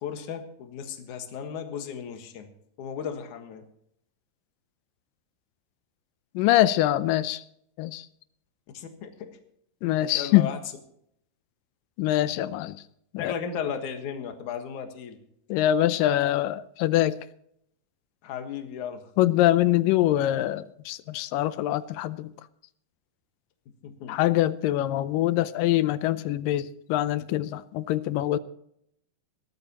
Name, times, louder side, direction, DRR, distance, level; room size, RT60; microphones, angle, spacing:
voice 1, 0.0-2.5 2.8-3.6 8.7-9.3 10.1-10.6 13.2-15.2 18.2-19.1 23.8-24.1, left 7 dB, 65° left, 6 dB, 2.9 m, -35 dB
voice 2, 6.4-7.4 7.8-8.1 9.8-10.5 12.0-12.8 13.1-13.3 15.5-17.2 19.2-22.3 24.1-28.4, left 14 dB, 85° left, 15 dB, 2.4 m, -24 dB
19.5 x 13.0 x 3.0 m, 0.71 s
omnidirectional pair, 3.8 m